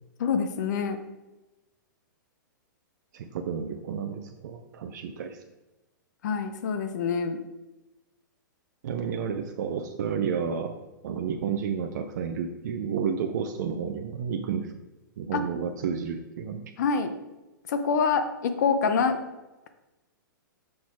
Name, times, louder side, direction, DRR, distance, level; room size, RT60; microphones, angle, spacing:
voice 1, 0.2-1.0 6.2-7.4 15.3-15.4 16.8-17.1 17.7-19.2, left 5 dB, 55° left, 9 dB, 0.7 m, -26 dB
voice 2, 3.1-5.4 8.8-10.8 11.0-14.7 15.2-16.7, right 7 dB, 55° right, 5 dB, 0.5 m, -31 dB
6.2 x 4.1 x 4.5 m, 1.0 s
figure-of-eight pair, 115°, 11 cm